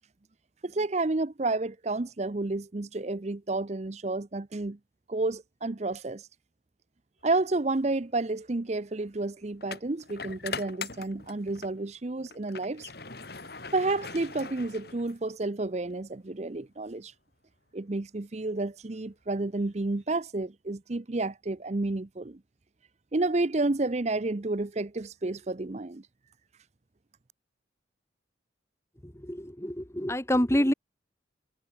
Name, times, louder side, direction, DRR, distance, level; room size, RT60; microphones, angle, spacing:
voice 1, 0.6-4.8 5.1-6.3 7.2-12.9 13.7-17.1 17.7-22.4 23.1-26.1, right 2 dB, 35° right, 0.6 m, -30 dB
sound 1, 7.5-7.7 9.6-11.8 12.2-15.4, left 5 dB, 55° left, 3.9 m, -41 dB
voice 2, 29.2-30.7, equal, 15° left, 1.8 m, -26 dB
head